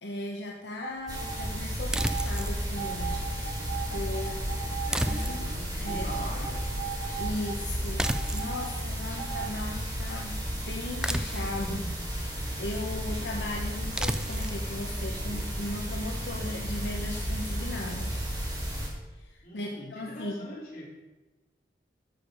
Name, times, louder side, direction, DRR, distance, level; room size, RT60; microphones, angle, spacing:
voice 1, 0.0-3.2 3.9-4.4 5.1-6.3 7.2-12.3 12.6-18.1 19.1-20.5, left 2 dB, 80° left, 0 dB, 1.0 m, -37 dB
sound 1, 0.8-1.5 2.0-2.3 2.8-5.4 5.9-7.5 8.0-8.7 9.2-9.5, right 7 dB, 80° right, 2.3 m, -37 dB
sound 2, 1.1-18.9, equal, 20° right, 2.6 m, -33 dB
sound 3, 1.9-2.6 4.9-5.7 8.0-8.6 11.0-11.7 14.0-14.6, right 1 dB, 5° right, 0.3 m, -31 dB
voice 2, 4.9-6.7 19.4-20.9, equal, 50° left, -4 dB, 3.2 m, -42 dB
13.0 x 7.2 x 4.9 m, 1.1 s
head